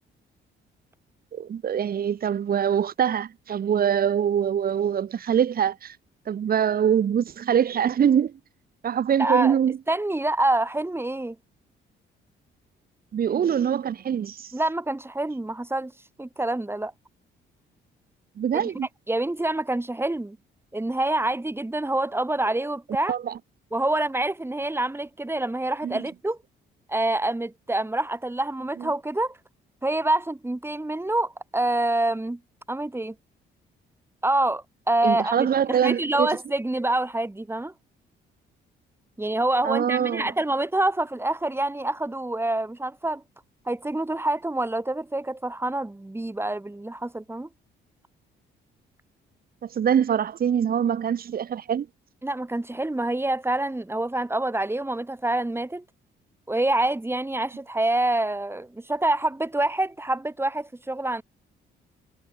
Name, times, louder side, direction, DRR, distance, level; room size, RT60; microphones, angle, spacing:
voice 1, 1.3-6.0 6.3-8.3 8.8-9.8 13.1-14.5 18.4-18.9 23.1-23.4 25.8-26.0 28.8-28.9 35.0-36.3 39.6-40.3 49.7-51.9, right 8 dB, 50° right, 1.1 m, -24 dB
voice 2, 9.2-9.6 9.9-11.4 14.5-15.9 16.2-16.9 18.5-18.6 19.1-20.4 20.7-23.1 23.7-26.4 26.9-29.4 29.8-32.4 32.7-33.2 34.2-37.7 39.2-43.2 43.7-47.5 52.2-55.8 56.5-61.2, right 2 dB, 10° right, 7.0 m, -26 dB
cardioid pair, 90°, 20 cm